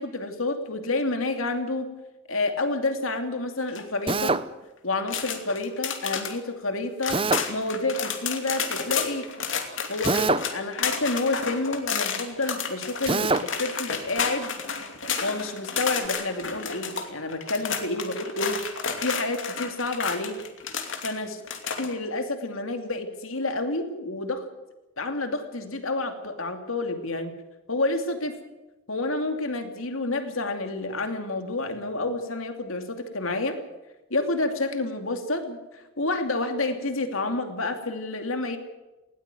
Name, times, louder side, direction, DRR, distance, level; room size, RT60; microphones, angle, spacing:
voice 1, 0.0-1.9 2.3-4.4 4.8-7.2 7.5-9.3 9.9-14.5 15.2-18.6 19.0-20.4 21.0-21.4 21.8-24.4 25.0-27.3 27.7-28.3 28.9-33.6 34.1-38.6, left 2 dB, 85° left, 6 dB, 2.7 m, -29 dB
sound 1, 3.7-4.1 4.9-6.3 6.7-6.8 7.0-21.1 21.4-21.9, left 6 dB, 70° left, 2.7 m, -31 dB
Drill, 4.1-4.5 7.1-7.5 10.0-10.5 13.1-13.5, right 3 dB, 25° right, 0.7 m, -23 dB
19.5 x 18.0 x 9.2 m, 1.0 s
head